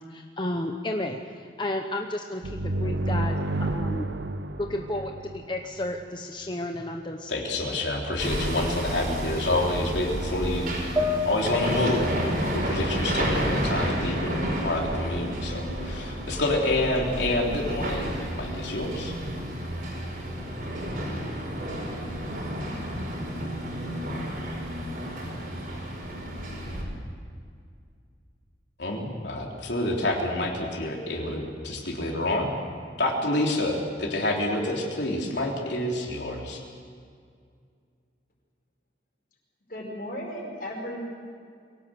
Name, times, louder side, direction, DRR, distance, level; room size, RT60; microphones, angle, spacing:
voice 1, 0.1-4.1 4.6-7.3, left 1 dB, 25° left, 3 dB, 1.0 m, -32 dB
sound 1, 2.4-6.0, right 1 dB, 85° right, 1.0 m, -30 dB
voice 2, 7.3-10.7 11.3-19.1 28.8-32.5 33.0-36.6, left 1 dB, 85° left, -1 dB, 3.5 m, -28 dB
Hammer, 8.2-26.8, equal, 55° right, 5.3 m, -31 dB
sound 2, 11.0-14.4 14.8-15.8, left 4 dB, 20° right, 1.6 m, -33 dB
voice 3, 39.7-41.0, equal, 50° left, 0 dB, 5.1 m, -35 dB
23.0 x 17.5 x 7.8 m, 2.2 s
head